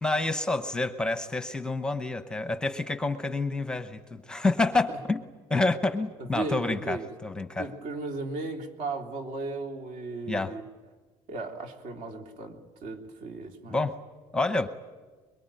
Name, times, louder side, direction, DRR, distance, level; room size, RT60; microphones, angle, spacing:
voice 1, 0.0-5.2 5.5-7.7 10.3-10.5 13.7-14.0 14.3-14.7, left 2 dB, 5° left, 8 dB, 0.8 m, -28 dB
voice 2, 6.2-7.1 7.6-10.7 11.3-13.8, right 3 dB, 65° right, 3 dB, 3.3 m, -36 dB
24.0 x 22.5 x 9.0 m, 1.4 s
cardioid pair, 175°, 11 cm